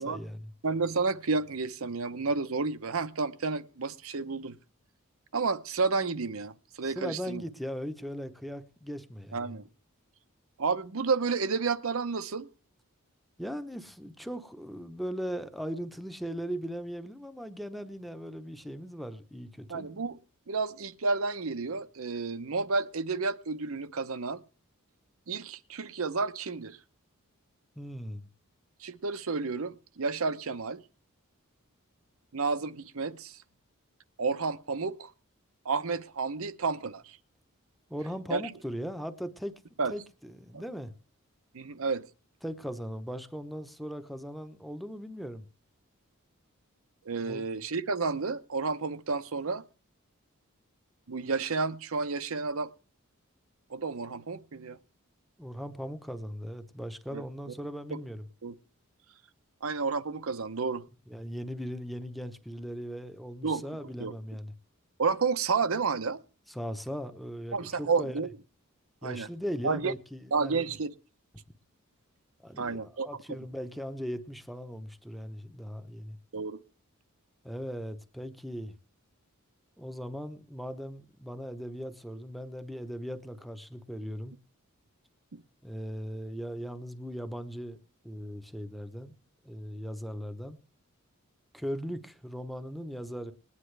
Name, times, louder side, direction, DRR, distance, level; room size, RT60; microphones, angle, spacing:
voice 1, 0.0-0.5 6.9-9.5 13.4-19.9 27.8-28.3 37.9-39.6 39.9-40.9 42.4-45.5 47.2-47.5 55.4-58.2 61.1-64.5 66.5-68.2 69.0-70.7 72.4-76.2 77.4-78.8 79.8-84.4 85.6-87.8 88.0-89.1 89.4-90.6 91.5-93.3, equal, ahead, 0.9 m, -38 dB
voice 2, 0.6-4.6 5.3-7.4 9.3-9.7 10.6-12.5 19.7-20.2 20.5-24.4 25.3-26.8 28.8-30.8 32.3-33.4 34.2-35.1 35.6-37.2 38.3-38.4 39.8-39.9 40.5-40.6 41.5-42.1 47.0-49.6 51.1-52.7 53.7-54.8 57.1-57.2 58.4-58.6 59.6-60.8 63.4-63.6 64.0-64.1 65.0-66.2 67.5-68.3 69.0-69.3 69.6-69.9 70.3-70.9 72.6-73.1 76.3-76.6, right 4 dB, 70° right, 0.8 m, -31 dB
20.5 x 9.7 x 3.3 m
head